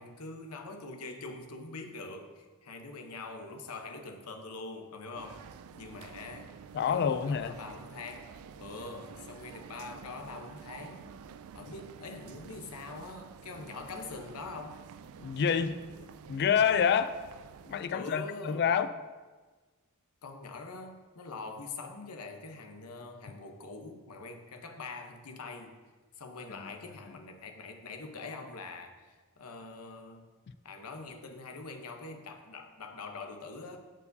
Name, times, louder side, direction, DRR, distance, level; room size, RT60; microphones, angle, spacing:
voice 1, 0.0-5.5 5.7-6.6 6.8-11.1 11.5-14.8 17.9-18.7 20.2-25.8 26.1-30.3 30.6-33.8, left 3 dB, 90° left, 4 dB, 0.9 m, -44 dB
sound 1, 5.1-17.8, right 7 dB, 70° right, 0.3 m, -49 dB
voice 2, 6.7-7.6 15.2-15.8 16.3-17.2 17.7-18.9, left 7 dB, 50° left, 11 dB, 0.3 m, -27 dB
13.5 x 4.7 x 2.7 m, 1.3 s
head